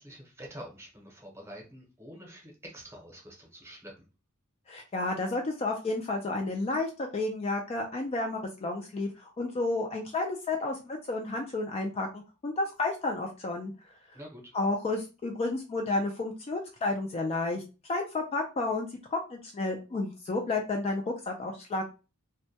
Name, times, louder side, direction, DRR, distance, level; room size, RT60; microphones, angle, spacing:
voice 1, 0.0-4.1 14.1-14.5, equal, 10° right, 0 dB, 0.8 m, -47 dB
voice 2, 4.7-13.7 14.5-17.6 17.9-21.8, left 2 dB, 30° left, 2 dB, 0.3 m, -31 dB
2.1 x 2.1 x 2.7 m, 0.31 s
head